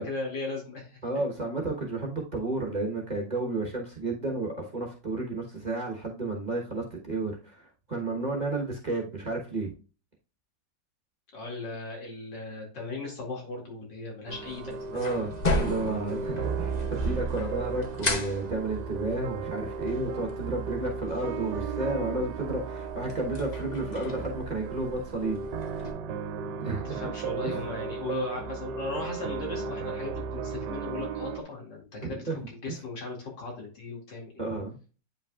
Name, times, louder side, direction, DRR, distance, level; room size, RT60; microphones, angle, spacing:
voice 1, 0.0-1.0 11.3-15.2 26.8-34.5, left 3 dB, 85° left, -1 dB, 3.0 m, -37 dB
voice 2, 1.0-9.7 14.9-15.3 15.6-25.4 25.7-25.9 26.6-27.0 27.4-27.6 32.1-32.7 34.4-34.8, right 2 dB, 30° right, -1 dB, 1.1 m, -32 dB
sound 1, 14.3-25.9, left 2 dB, 40° left, 0.6 m, -36 dB
sound 2, 14.3-31.4, right 5 dB, 75° right, 1.2 m, -35 dB
9.0 x 5.4 x 2.4 m, 0.35 s
omnidirectional pair, 1.9 m